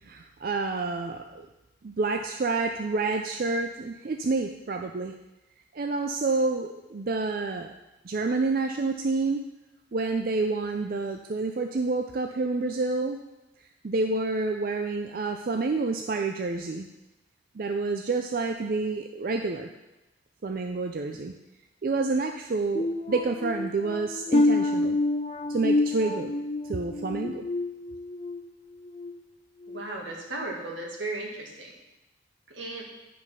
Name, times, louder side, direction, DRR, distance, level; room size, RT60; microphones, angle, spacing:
voice 1, 0.0-1.5 1.8-5.2 5.7-7.7 8.0-9.4 9.9-13.2 13.8-16.9 17.6-19.7 20.4-21.3 21.8-25.0 25.5-26.3 26.7-27.5, right 3 dB, 50° right, 4 dB, 0.4 m, -28 dB
sound 1, 22.8-28.4 28.8-29.1 29.6-29.8, left 2 dB, 30° left, 0.4 m, -28 dB
voice 2, 29.7-31.7 32.5-32.9, right 2 dB, 80° right, -1 dB, 1.9 m, -35 dB
9.6 x 5.2 x 5.5 m, 0.99 s
head